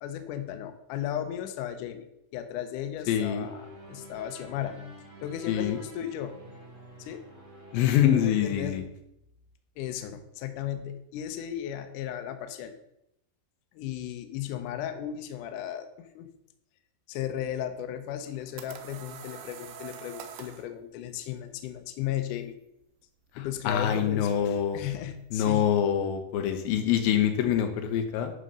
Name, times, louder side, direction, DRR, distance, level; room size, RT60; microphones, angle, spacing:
voice 1, 0.0-2.1 2.3-4.8 5.2-6.4 7.0-7.2 8.1-8.9 9.8-12.7 13.7-16.3 17.1-22.6 23.4-25.8, left 10 dB, 90° left, 8 dB, 1.8 m, -35 dB
voice 2, 3.1-3.5 5.5-5.8 7.7-8.8 23.7-24.8 25.3-28.3, left 9 dB, 75° left, 6 dB, 2.5 m, -25 dB
sound 1, 3.4-8.7, left 1 dB, 30° right, 1.6 m, -48 dB
sound 2, 18.1-20.7, right 8 dB, 85° right, 2.8 m, -44 dB
11.0 x 4.1 x 5.4 m, 0.80 s
omnidirectional pair, 4.7 m